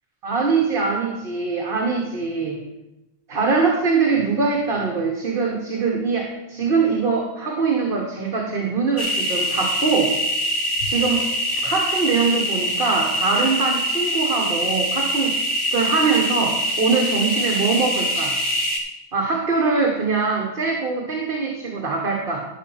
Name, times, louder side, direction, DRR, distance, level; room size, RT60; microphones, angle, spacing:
voice 1, 0.2-2.6 3.3-10.1 10.8-11.3 11.6-15.4 15.7-18.4 19.1-22.4, right 4 dB, 60° right, 1 dB, 1.5 m, -22 dB
sound 1, 9.0-18.8, equal, 90° left, 2.5 m, -23 dB
12.0 x 5.4 x 7.2 m, 0.95 s
omnidirectional pair, 1.1 m